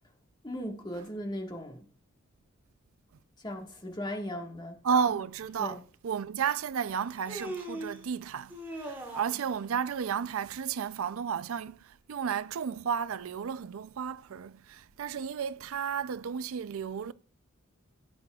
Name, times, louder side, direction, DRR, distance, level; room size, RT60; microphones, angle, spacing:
voice 1, 0.4-1.8 3.4-4.8 5.6-5.8, left 1 dB, 20° left, 1.5 m, -37 dB
voice 2, 4.8-17.1, right 7 dB, 80° right, 0.4 m, -33 dB
Human voice, 5.5-5.6 6.8-8.0 8.5-9.5, right 1 dB, 10° right, 2.3 m, -40 dB
16.0 x 8.4 x 2.3 m
head